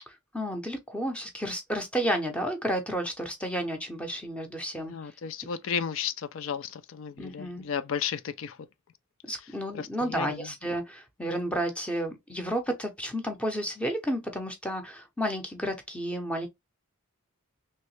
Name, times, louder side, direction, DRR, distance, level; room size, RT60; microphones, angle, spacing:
voice 1, 0.3-4.9 7.2-7.7 9.2-16.5, equal, 5° left, 0.6 m, -31 dB
voice 2, 4.9-8.6 9.7-10.5, left 7 dB, 65° left, 0.4 m, -33 dB
3.2 x 2.8 x 3.1 m
head